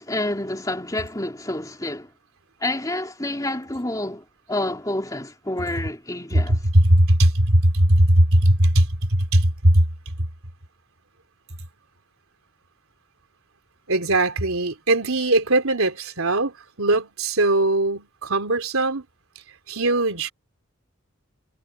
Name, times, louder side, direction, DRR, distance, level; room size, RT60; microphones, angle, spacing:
voice 1, 0.0-2.1 2.6-6.6, left 1 dB, 15° left, 2.9 m, -28 dB
voice 2, 6.5-8.9 9.2-9.8 13.9-19.0 19.7-20.3, right 1 dB, 85° right, 3.4 m, -19 dB
head